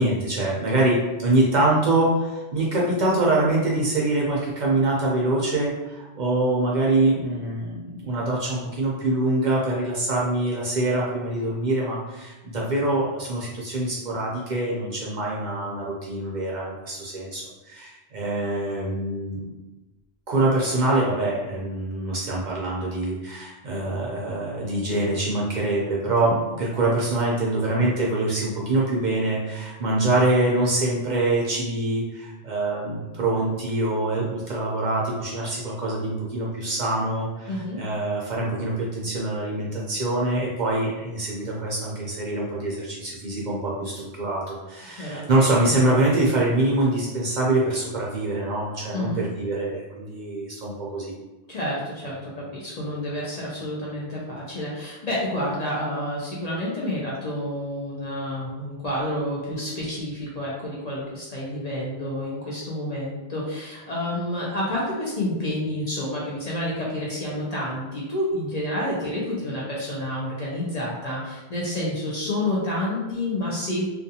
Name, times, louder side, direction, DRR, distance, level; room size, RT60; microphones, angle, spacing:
voice 1, 0.0-19.4 20.3-51.1, right 2 dB, 55° right, -4 dB, 0.5 m, -24 dB
voice 2, 37.5-37.8 45.0-45.3 48.9-49.2 51.5-73.9, left 1 dB, 50° left, -6 dB, 0.6 m, -29 dB
2.4 x 2.3 x 2.7 m, 1.1 s
omnidirectional pair, 1.1 m